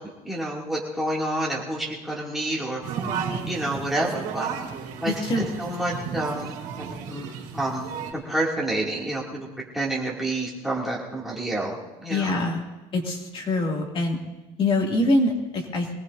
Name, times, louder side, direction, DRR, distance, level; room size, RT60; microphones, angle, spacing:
voice 1, 0.2-2.8 3.4-4.5 5.0-5.1 5.6-7.3 7.5-9.5 9.7-12.3, right 1 dB, ahead, -5 dB, 2.6 m, -29 dB
sound 1, 2.8-8.1, right 6 dB, 65° right, 3.4 m, -33 dB
voice 2, 5.1-5.5 12.1-12.6 12.9-14.2 14.6-15.9, left 2 dB, 30° left, 0 dB, 2.5 m, -24 dB
23.5 x 18.5 x 2.7 m, 1.1 s
cardioid pair, 165°, 16 cm